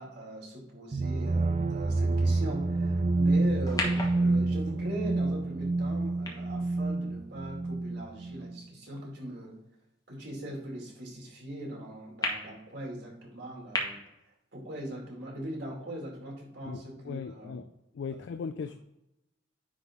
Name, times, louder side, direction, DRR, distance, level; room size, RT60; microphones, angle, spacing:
voice 1, 0.0-9.6 10.1-14.0 14.5-17.6 18.1-18.2, right 1 dB, 65° right, -2 dB, 2.3 m, -41 dB
sound 1, 0.9-8.6, right 2 dB, 35° right, 0.4 m, -28 dB
sound 2, 3.6-8.1 8.7-8.8 12.2-12.3 13.7-13.8, left 2 dB, 20° left, 1.3 m, -37 dB
voice 2, 16.7-17.7 17.9-18.8, left 5 dB, 65° left, 10 dB, 0.4 m, -38 dB
9.8 x 3.8 x 3.6 m, 0.90 s
head